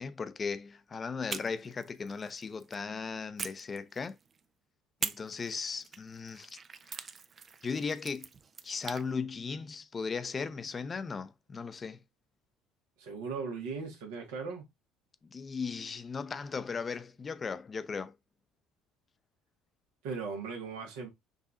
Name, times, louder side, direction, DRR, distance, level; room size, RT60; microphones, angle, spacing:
voice 1, 0.0-4.2 5.0-6.6 6.9-7.0 7.6-8.3 8.6-12.0 15.3-18.2, left 5 dB, 35° left, 0.6 m, -37 dB
sound 1, 1.3-2.8 3.4-4.4 5.0-9.1, right 6 dB, 40° right, 0.5 m, -43 dB
voice 2, 13.0-14.7 20.0-21.1, right 5 dB, 75° right, 1.4 m, -38 dB
6.4 x 2.7 x 2.4 m
hypercardioid pair, 65°, 0 cm